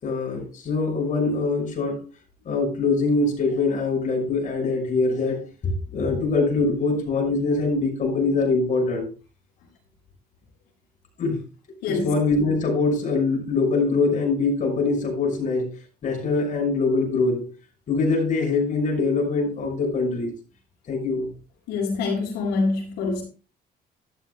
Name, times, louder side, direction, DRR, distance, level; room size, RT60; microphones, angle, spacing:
voice 1, 0.0-2.0 2.4-5.4 5.6-9.1 11.2-11.4 11.8-15.7 16.0-17.4 17.9-20.3 20.9-21.3, left 3 dB, 50° left, 6.3 m, -23 dB
voice 2, 21.7-23.2, left 3 dB, 90° left, 5.4 m, -25 dB
13.0 x 12.0 x 2.3 m
cardioid pair, 110°, 17 cm